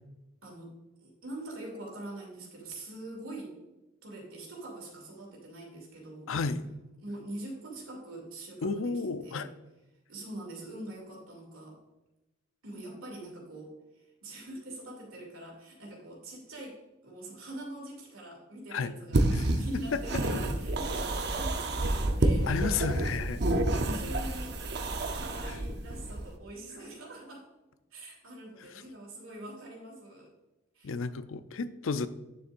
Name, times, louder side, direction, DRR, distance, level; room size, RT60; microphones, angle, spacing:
voice 1, 0.4-3.5 4.0-6.3 7.0-9.5 10.1-11.8 12.6-13.7 14.2-22.5 22.8-22.9 23.4-23.5 23.8-24.6 25.1-27.5 27.9-30.3 30.7-30.9, right 1 dB, 90° right, 2.7 m, -44 dB
voice 2, 6.3-6.7 8.6-9.5 18.7-18.9 19.3-20.0 22.5-23.4 25.5-25.6 30.8-32.1, left 4 dB, 80° left, 0.5 m, -32 dB
sound 1, 19.1-26.3, right 1 dB, 55° right, 0.8 m, -29 dB
9.6 x 7.0 x 2.6 m
head